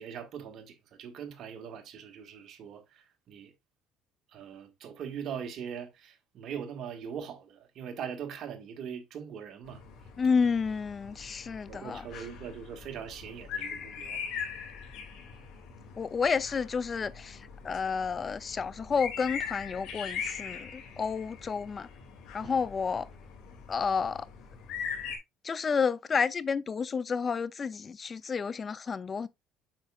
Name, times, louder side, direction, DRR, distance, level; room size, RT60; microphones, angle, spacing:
voice 1, 0.0-3.5 4.3-9.8 11.7-14.5 22.4-22.6, right 7 dB, 55° right, 1.5 m, -41 dB
sound 1, 9.6-25.2, left 7 dB, 70° left, 2.3 m, -41 dB
voice 2, 10.2-12.1 16.0-21.9 22.3-23.1 23.7-24.3 25.4-29.3, left 5 dB, 30° left, 0.4 m, -30 dB
7.6 x 5.9 x 2.3 m
cardioid pair, 110°, 0 cm